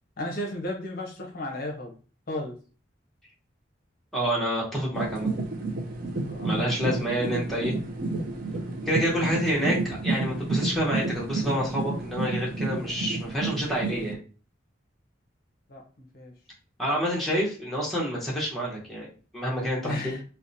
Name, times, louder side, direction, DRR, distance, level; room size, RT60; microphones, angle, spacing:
voice 1, 0.2-2.0 2.3-2.6 6.3-7.1 9.2-9.4 15.7-15.8 16.1-16.3 19.8-20.2, left 1 dB, 55° left, 1 dB, 0.6 m, -34 dB
voice 2, 4.1-5.3 6.4-7.7 8.9-14.2 16.8-20.1, equal, ahead, -5 dB, 0.8 m, -28 dB
sound 1, 4.9-14.1, right 3 dB, 50° right, 0.4 m, -31 dB
2.7 x 2.1 x 2.5 m, 0.37 s
head